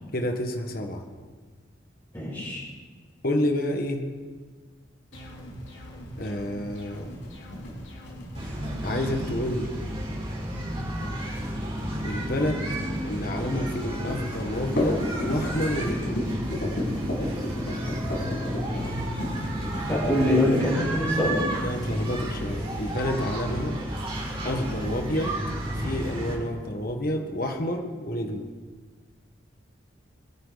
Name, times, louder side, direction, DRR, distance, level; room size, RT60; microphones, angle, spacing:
voice 1, 0.1-1.0 3.2-4.1 6.2-7.1 8.8-9.7 12.0-12.7 13.0-16.2 21.6-23.8 24.4-25.4 25.8-28.5, left 1 dB, 50° left, 4 dB, 1.7 m, -29 dB
voice 2, 2.1-2.6 19.9-21.4, left 1 dB, 20° left, -11 dB, 6.2 m, -24 dB
sound 1, 5.1-9.5, equal, 85° left, 3.6 m, -42 dB
sound 2, 6.9-20.7, left 1 dB, 65° left, 6.4 m, -33 dB
sound 3, 8.3-26.4, equal, 30° right, 4.6 m, -31 dB
26.5 x 11.5 x 4.2 m, 1.5 s
head